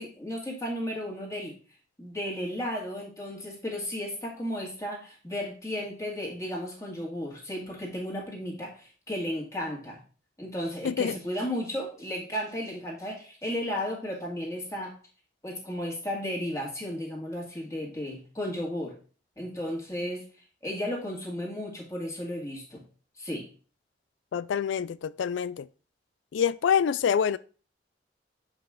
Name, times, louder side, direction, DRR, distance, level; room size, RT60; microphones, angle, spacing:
voice 1, 0.0-1.6 2.0-10.0 10.4-14.9 15.4-18.9 19.4-20.2 20.6-22.8 23.2-23.5, equal, 15° left, 2.0 m, -34 dB
voice 2, 10.8-11.2 24.3-25.7 26.3-27.4, left 7 dB, 80° left, 0.3 m, -26 dB
7.1 x 5.3 x 3.7 m
head